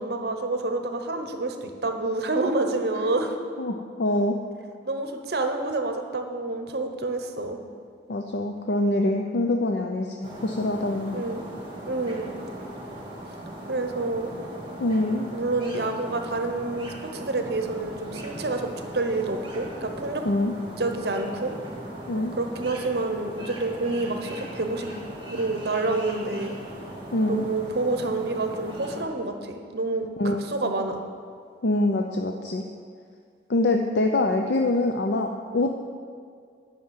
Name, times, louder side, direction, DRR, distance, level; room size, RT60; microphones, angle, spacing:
voice 1, 0.0-3.3 4.8-7.6 11.1-11.4 11.9-12.3 13.7-14.3 15.3-20.3 20.8-21.5 22.4-24.9 25.3-26.6 27.3-31.0, right 2 dB, 55° right, 5 dB, 0.9 m, -28 dB
voice 2, 3.6-4.4 8.1-11.2 14.8-15.3 20.2-20.6 22.1-22.4 27.1-27.5 30.2-30.7 31.6-32.6 33.5-35.7, left 2 dB, 65° left, 3 dB, 0.5 m, -25 dB
sound 1, 10.2-29.0, right 1 dB, 25° right, 1.8 m, -39 dB
9.5 x 5.8 x 7.5 m, 2.1 s
head